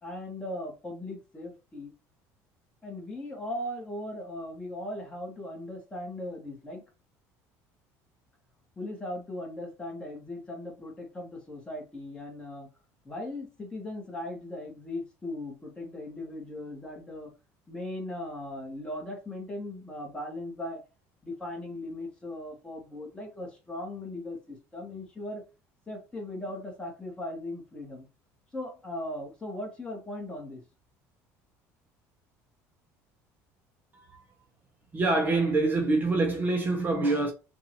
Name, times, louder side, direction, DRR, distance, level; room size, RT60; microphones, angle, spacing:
voice 1, 0.0-1.9 2.8-6.8 8.8-12.7 13.0-17.3 17.7-20.8 21.2-25.4 25.9-28.1 28.5-30.6, left 1 dB, 15° left, 1.8 m, -38 dB
voice 2, 34.9-37.3, right 2 dB, 25° right, 0.9 m, -25 dB
5.5 x 2.7 x 3.0 m
cardioid pair, 130°, 7 cm